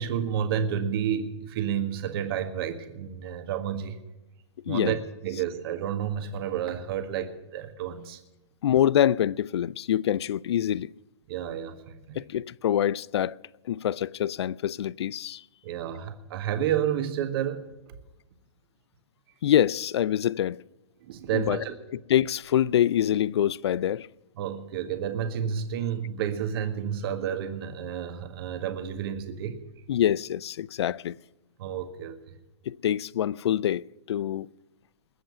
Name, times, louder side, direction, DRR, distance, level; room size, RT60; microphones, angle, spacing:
voice 1, 0.0-4.0 4.7-8.2 11.3-12.2 15.6-17.6 21.0-21.7 24.4-29.6 31.6-32.2, right 9 dB, 55° right, 1.7 m, -30 dB
voice 2, 4.7-5.0 8.6-10.9 12.2-13.4 13.7-15.4 19.4-20.6 21.3-21.6 21.9-24.1 29.9-31.2 32.7-34.5, left 11 dB, 65° left, 0.5 m, -25 dB
21.0 x 7.7 x 8.6 m
hypercardioid pair, 115°, 15 cm